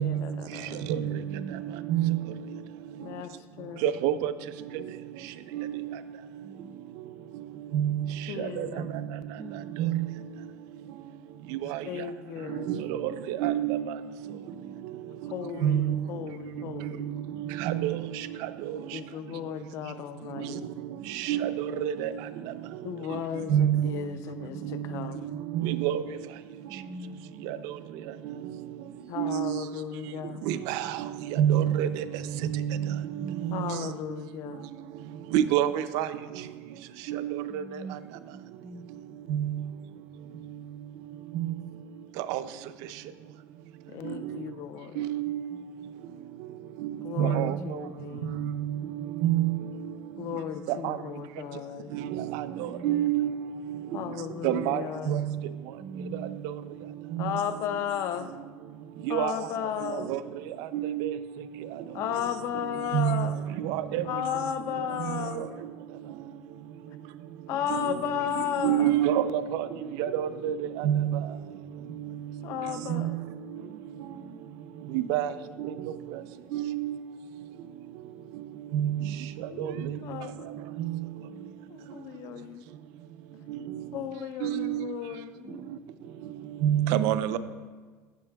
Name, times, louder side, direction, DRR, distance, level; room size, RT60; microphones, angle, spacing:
voice 1, 0.0-0.9 3.0-3.8 8.3-8.9 11.8-12.7 15.2-17.2 18.9-20.7 22.8-25.4 29.1-30.5 33.5-34.7 43.9-45.1 47.0-48.5 50.2-51.9 53.9-55.2 57.2-58.3 59.1-60.1 61.9-63.4 64.0-65.5 67.5-69.0 72.4-73.2 80.0-80.5 81.7-82.6 83.9-85.3, left 9 dB, 55° left, 0.5 m, -35 dB
voice 2, 0.9-1.7 6.4-6.8 9.3-10.0 14.2-14.8 17.3-17.9 20.9-21.6 23.1-25.1 26.6-27.3 32.7-34.0 37.5-38.0 38.3-39.0 41.3-41.8 45.2-45.7 47.3-48.0 50.1-50.7 51.9-53.1 54.2-54.7 55.8-56.4 56.7-56.9 57.7-57.8 59.5-59.8 61.9-62.1 62.5-62.6 64.9-65.4 67.5-67.7 70.8-71.0 71.5-71.6 73.8-74.4 81.3-81.8 85.5-85.8, right 3 dB, 15° right, 0.4 m, -46 dB
voice 3, 3.8-4.3 5.6-5.7 7.7-8.0 8.6-8.7 9.8-10.0 13.0-13.8 15.6-16.0 17.7-18.0 21.3-21.5 21.8-22.1 23.5-23.9 25.5-26.0 29.2-29.6 30.5-30.6 31.4-31.9 32.5-32.8 35.3-35.7 35.9-36.1 37.1-37.2 39.3-39.5 42.3-42.4 45.0-45.4 47.2-47.5 49.2-49.6 50.8-50.9 52.8-53.3 54.4-54.8 55.1-55.2 59.1-59.3 60.1-60.2 60.7-61.1 62.9-63.3 63.9-64.0 67.7-67.8 68.6-69.3 70.0-70.5 70.8-71.2 72.9-73.0 74.9-75.3 76.5-76.9 78.7-79.0 84.4-84.8 86.6-87.4, right 11 dB, 75° right, 0.4 m, -25 dB
voice 4, 11.6-12.1 15.2-15.6 16.0-16.3 47.8-48.4 57.9-58.0 61.9-62.1 65.7-65.8 68.1-68.4 72.4-72.5 73.4-74.2 78.8-79.1 79.5-79.9 85.3-85.9, left 5 dB, 85° left, 1.2 m, -51 dB
12.0 x 8.5 x 2.3 m
cardioid pair, 150°, 6 cm